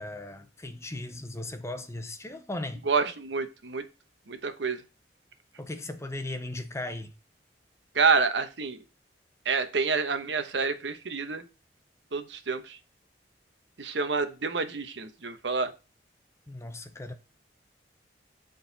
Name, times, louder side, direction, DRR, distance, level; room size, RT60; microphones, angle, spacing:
voice 1, 0.0-2.9 5.6-7.1 16.5-17.1, left 2 dB, 15° left, 0.7 m, -37 dB
voice 2, 2.8-3.8 4.3-4.8 7.9-8.8 9.4-11.4 12.1-12.8 13.8-15.7, right 4 dB, 85° right, 1.0 m, -28 dB
8.6 x 3.9 x 4.0 m
head